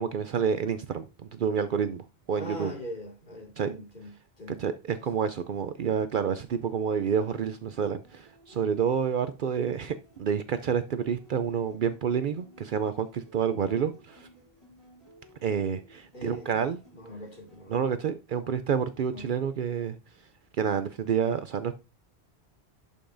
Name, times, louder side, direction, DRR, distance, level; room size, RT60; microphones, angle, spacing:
voice 1, 0.0-2.7 3.6-3.8 4.6-14.3 15.4-16.8 17.7-20.0 20.6-21.8, right 7 dB, 60° right, 0.6 m, -29 dB
voice 2, 2.3-4.6 16.1-16.6 16.9-17.8 19.1-19.3, left 1 dB, 50° left, 2.3 m, -41 dB
sound 1, 5.8-17.8, equal, 25° left, 5.7 m, -58 dB
11.5 x 5.4 x 2.6 m
omnidirectional pair, 1.1 m